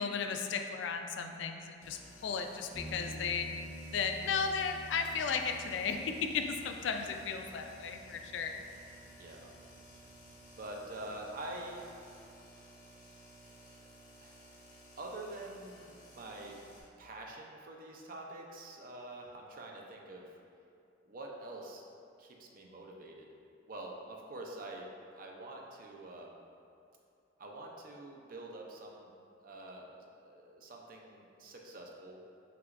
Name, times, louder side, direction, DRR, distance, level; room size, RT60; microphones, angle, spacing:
voice 1, 0.0-3.5 3.9-8.6, left 5 dB, 70° left, 5 dB, 0.3 m, -35 dB
sound 1, 1.8-16.8, right 1 dB, 50° left, 1.0 m, -56 dB
sound 2, 2.7-12.2, equal, 15° right, 1.5 m, -51 dB
voice 2, 9.2-9.5 10.6-11.9 13.7-13.8 14.2-14.4 15.0-16.6 17.0-20.3 21.1-21.8 22.2-23.3 23.7-26.4 27.4-29.1 29.4-32.2, right 2 dB, 50° right, 0 dB, 0.5 m, -46 dB
5.8 x 3.0 x 2.5 m, 2.6 s
head